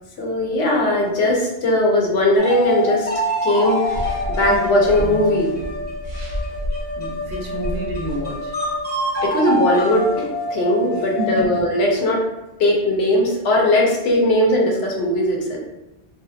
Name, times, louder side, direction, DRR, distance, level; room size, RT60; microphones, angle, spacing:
voice 1, 0.2-3.1 3.4-3.8 4.3-5.5 9.2-12.2 12.6-15.6, left 1 dB, 80° left, -1 dB, 0.9 m, -19 dB
sound 1, 2.4-11.8, left 1 dB, 10° left, 0.5 m, -26 dB
sound 2, 3.8-8.8, equal, 85° right, 0.9 m, -30 dB
voice 2, 7.0-8.5 11.0-11.5, right 2 dB, 60° right, -3 dB, 0.7 m, -29 dB
2.6 x 2.1 x 2.3 m, 0.98 s
omnidirectional pair, 1.1 m